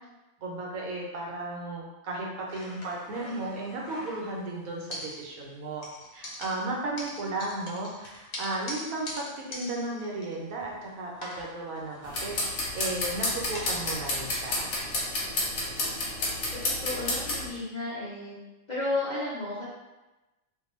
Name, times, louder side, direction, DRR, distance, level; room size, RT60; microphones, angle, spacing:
voice 1, 0.4-5.8 6.1-14.7, right 2 dB, 85° right, -2 dB, 1.1 m, -35 dB
sound 1, 2.5-4.5 4.9-5.5 5.8-10.8 11.1-13.9, left 1 dB, 90° left, 1.1 m, -43 dB
sound 2, 12.0-17.5, left 2 dB, 65° left, 1.0 m, -31 dB
voice 2, 16.5-18.3 18.7-19.6, left 2 dB, 50° left, -9 dB, 0.5 m, -33 dB
2.5 x 2.2 x 2.9 m, 1.1 s
omnidirectional pair, 1.4 m